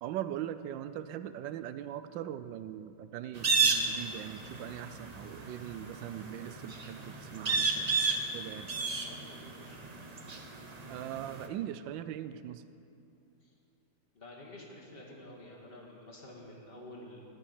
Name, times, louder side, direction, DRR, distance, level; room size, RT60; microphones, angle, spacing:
voice 1, 0.0-7.9 8.3-8.7 10.9-12.6, right 11 dB, 85° right, 12 dB, 1.3 m, -40 dB
sound 1, 3.4-11.5, right 4 dB, 40° right, 0.5 m, -32 dB
voice 2, 8.7-9.8 13.4-13.5 14.1-17.2, left 1 dB, 30° left, -2 dB, 2.0 m, -50 dB
14.0 x 6.1 x 9.6 m, 2.7 s
omnidirectional pair, 2.0 m